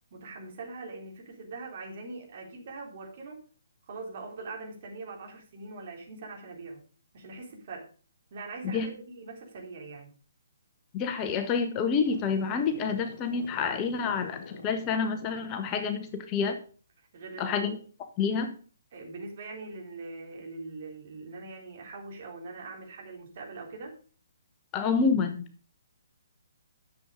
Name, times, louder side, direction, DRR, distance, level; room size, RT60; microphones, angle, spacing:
voice 1, 0.1-3.4 3.9-6.8 7.1-7.9 8.3-10.1 17.0-17.8 18.9-24.0, right 3 dB, 45° right, 1 dB, 3.7 m, -42 dB
voice 2, 10.9-16.6 17.4-17.8 18.2-18.5 24.7-25.4, left 5 dB, 25° left, 8 dB, 1.1 m, -28 dB
sound 1, 12.0-16.3, left 4 dB, 45° left, 2.6 m, -46 dB
11.0 x 7.2 x 5.2 m, 0.40 s
figure-of-eight pair, 130°, 0 cm